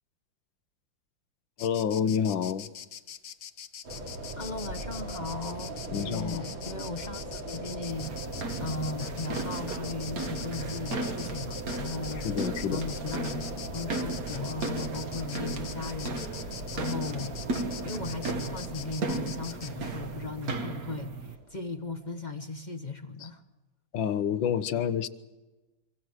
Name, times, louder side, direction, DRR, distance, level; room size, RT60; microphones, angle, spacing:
voice 1, 1.6-2.7 5.9-6.4 6.7-6.8 12.2-12.8 23.9-25.1, left 8 dB, 75° left, 13 dB, 1.7 m, -28 dB
Insect, 1.6-19.7, left 8 dB, 55° left, 1.2 m, -44 dB
sound 1, 3.8-21.8, right 1 dB, 80° right, 3.9 m, -40 dB
voice 2, 4.4-17.4 17.8-23.4, left 3 dB, 30° left, 8 dB, 0.9 m, -37 dB
sound 2, 7.9-21.4, right 3 dB, 50° right, 1.7 m, -36 dB
25.5 x 24.5 x 6.4 m, 1.1 s
omnidirectional pair, 2.1 m